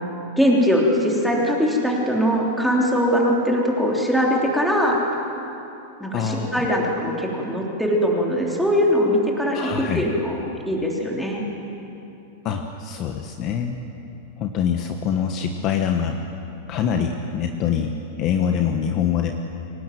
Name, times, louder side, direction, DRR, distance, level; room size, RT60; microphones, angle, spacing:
voice 1, 0.4-5.0 6.0-10.4 10.6-11.4, equal, ahead, -3 dB, 3.2 m, -21 dB
voice 2, 6.1-6.7 9.5-10.1 12.4-13.8 14.4-16.2 16.7-17.9 18.2-19.3, left 8 dB, 30° left, 4 dB, 1.2 m, -24 dB
23.5 x 19.0 x 9.2 m, 2.9 s
supercardioid pair, 165°, 0 cm